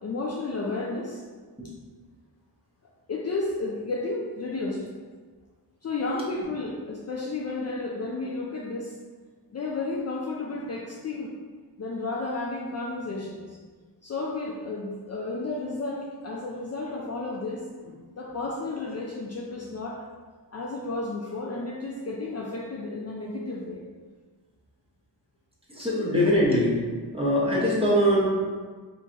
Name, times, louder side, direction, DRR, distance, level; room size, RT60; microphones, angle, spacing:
voice 1, 0.0-1.2 3.1-4.9 5.8-8.9 9.5-11.3 11.8-13.6 14.0-20.1 20.5-23.8, left 3 dB, 40° left, -3 dB, 0.4 m, -32 dB
voice 2, 25.7-26.8 27.1-28.3, equal, 15° right, -6 dB, 1.0 m, -22 dB
3.8 x 2.9 x 2.7 m, 1.5 s
wide cardioid pair, 90°, 41 cm